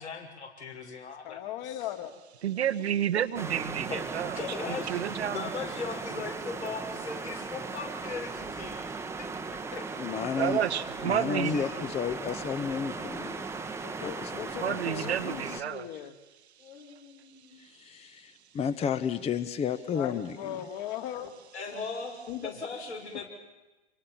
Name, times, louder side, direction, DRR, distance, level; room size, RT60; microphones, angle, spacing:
voice 1, 0.0-1.8 3.9-5.1 5.3-8.9 9.5-9.9 10.3-10.8 11.4-11.9 16.6-17.6 21.5-23.2, left 4 dB, 80° left, 1 dB, 6.4 m, -39 dB
voice 2, 1.2-2.1 13.8-16.1 19.9-21.3 21.7-21.8 22.3-22.5, left 11 dB, 45° left, 6 dB, 2.7 m, -38 dB
voice 3, 2.4-4.4 4.9-5.4 10.4-11.6 14.6-15.9, right 10 dB, 70° right, 11 dB, 1.3 m, -30 dB
sound 1, 3.3-15.6, right 4 dB, 10° right, 1.1 m, -37 dB
voice 4, 10.0-10.6 11.0-13.4 14.0-15.2 15.5-15.6 17.6-20.6, left 7 dB, 20° left, 13 dB, 0.9 m, -32 dB
27.5 x 24.5 x 7.4 m, 1.1 s
figure-of-eight pair, 100°, 33 cm